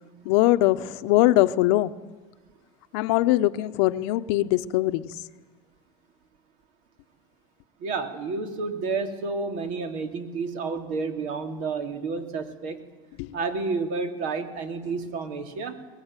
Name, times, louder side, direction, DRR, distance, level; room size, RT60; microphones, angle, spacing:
voice 1, 0.2-1.9 2.9-5.3 13.2-13.4, left 16 dB, 75° left, 12 dB, 1.0 m, -22 dB
voice 2, 7.8-12.8 13.3-15.9, right 4 dB, 65° right, 6 dB, 3.2 m, -30 dB
22.0 x 21.0 x 9.1 m, 1.3 s
supercardioid pair, 115°, 14 cm